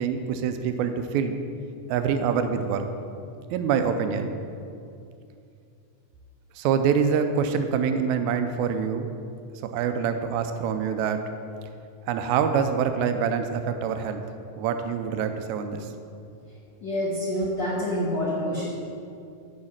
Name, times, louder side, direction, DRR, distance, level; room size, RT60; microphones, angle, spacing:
voice 1, 0.0-1.4 1.9-2.9 3.5-4.4 6.6-9.1 9.7-11.2 12.1-14.2 14.6-15.9, right 7 dB, 80° right, 7 dB, 1.9 m, -25 dB
voice 2, 16.8-18.6, equal, 65° left, -6 dB, 1.1 m, -27 dB
6.5 x 5.6 x 7.2 m, 2.5 s
omnidirectional pair, 3.4 m